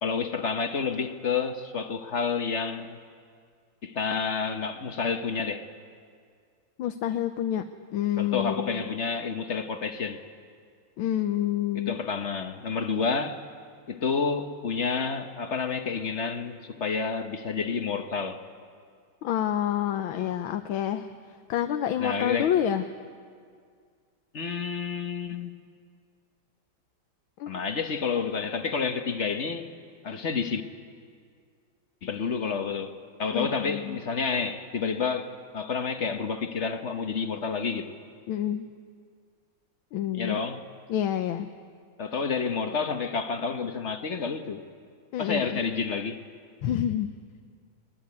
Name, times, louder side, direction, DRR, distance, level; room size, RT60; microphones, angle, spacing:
voice 1, 0.0-3.0 3.8-5.7 8.2-10.2 11.7-13.4 13.9-18.4 22.0-22.5 24.3-25.6 27.5-29.7 30.0-30.6 32.0-32.9 33.2-37.9 40.1-40.7 42.0-44.6 45.2-46.2, left 5 dB, 45° left, 1.1 m, -29 dB
voice 2, 6.8-7.6 7.9-8.8 11.0-12.0 19.2-21.1 21.5-22.8 27.4-27.5 33.3-34.0 38.3-38.7 39.9-40.4 40.9-41.5 45.1-45.6 46.6-47.1, left 10 dB, 90° left, 1.6 m, -28 dB
22.0 x 21.5 x 9.6 m
omnidirectional pair, 2.2 m